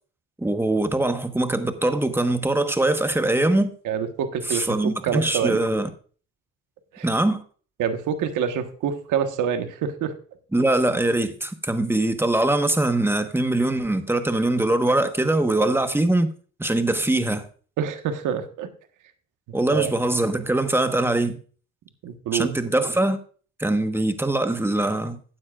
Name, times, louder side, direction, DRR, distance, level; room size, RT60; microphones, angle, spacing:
voice 1, 0.4-3.7 4.5-5.9 7.0-7.4 10.5-16.3 16.6-17.4 19.5-21.4 22.3-23.2 23.6-25.2, right 2 dB, 10° right, 1.2 m, -22 dB
voice 2, 3.8-5.6 6.9-7.1 7.8-10.1 15.6-15.7 17.8-18.7 19.7-19.9 22.0-22.5, right 8 dB, 85° right, 1.4 m, -26 dB
14.5 x 9.5 x 2.5 m
cardioid pair, 90°, 30 cm